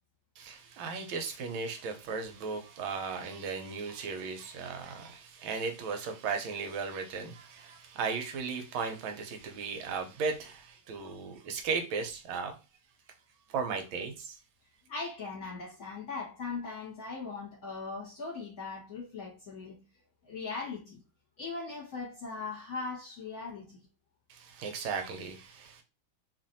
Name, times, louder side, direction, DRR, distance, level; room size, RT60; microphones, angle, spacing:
voice 1, 0.4-12.5 13.5-14.4 24.3-25.8, right 5 dB, 80° right, 1.4 m, -36 dB
voice 2, 14.9-19.8 20.2-21.0 21.4-23.8, left 4 dB, 50° left, 1.3 m, -39 dB
3.2 x 2.4 x 2.6 m
omnidirectional pair, 2.3 m